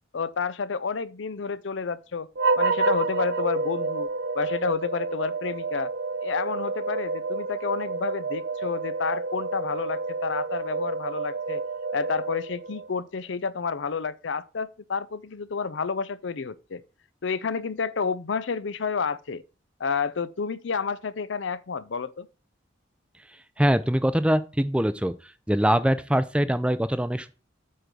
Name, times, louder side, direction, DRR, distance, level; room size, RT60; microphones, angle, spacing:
voice 1, 0.1-2.3 2.6-4.1 4.3-5.9 6.2-11.6 11.9-16.8 17.2-19.4 19.8-22.3, left 5 dB, 75° left, 0.6 m, -30 dB
sound 1, 2.3-12.9, right 3 dB, 60° right, 0.6 m, -29 dB
voice 2, 23.6-25.1 25.5-27.3, equal, 5° right, 0.5 m, -23 dB
9.3 x 3.8 x 6.7 m
head